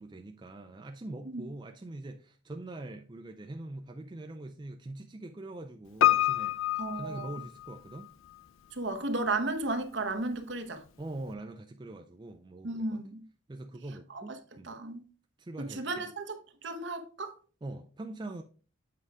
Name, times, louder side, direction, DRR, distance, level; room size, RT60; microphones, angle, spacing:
voice 1, 0.0-8.1 11.0-13.0 13.5-14.7 15.4-16.1 17.6-18.4, right 2 dB, 20° right, 0.4 m, -43 dB
Piano, 6.0-8.1 8.3-8.4, left 13 dB, 80° left, 0.4 m, -27 dB
voice 2, 6.8-7.4 8.7-10.8 12.6-13.2 14.1-14.2 14.6-15.0 15.6-17.3, right 2 dB, 60° right, 0.9 m, -34 dB
7.7 x 4.8 x 3.6 m
head